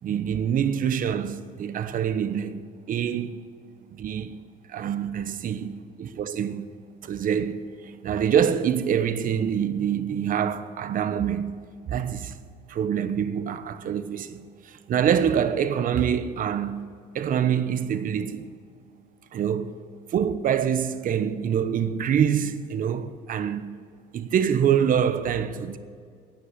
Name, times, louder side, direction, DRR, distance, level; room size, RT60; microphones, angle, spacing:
voice 1, 0.0-2.6 2.9-3.5 3.9-4.4 4.7-5.7 6.0-6.7 7.0-11.5 11.9-12.4 12.7-16.9 17.1-18.5 19.3-19.8 20.1-23.7 24.1-25.8, right 8 dB, 55° right, 1.0 m, -25 dB
16.5 x 6.1 x 9.6 m
cardioid pair, 110°, 17 cm